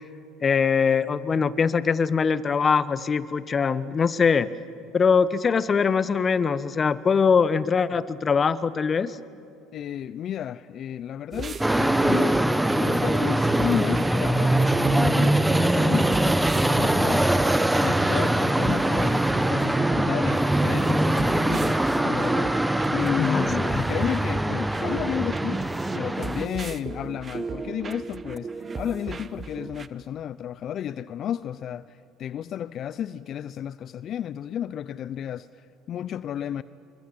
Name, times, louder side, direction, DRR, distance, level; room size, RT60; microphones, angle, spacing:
voice 1, 0.4-4.5 4.9-9.2 23.2-23.8, left 5 dB, 35° left, 1.2 m, -22 dB
voice 2, 9.7-12.4 12.8-17.5 17.8-25.6 25.9-36.6, left 10 dB, 50° left, 0.6 m, -32 dB
sound 1, 11.3-29.9, right 5 dB, 30° right, 1.2 m, -35 dB
sound 2, 11.6-26.5, right 1 dB, 5° right, 1.3 m, -23 dB
27.0 x 23.5 x 8.5 m
hypercardioid pair, 70°, 0 cm